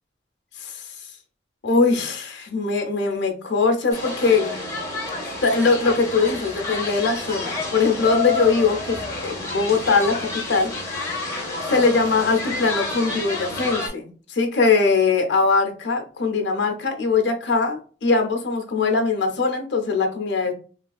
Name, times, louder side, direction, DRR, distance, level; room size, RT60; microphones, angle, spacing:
voice 1, 1.6-4.6 5.4-10.7 11.7-20.5, left 4 dB, 70° left, 3 dB, 0.7 m, -21 dB
sound 1, 3.9-13.9, left 2 dB, 15° left, 0.9 m, -29 dB
3.3 x 2.3 x 2.3 m, 0.38 s
head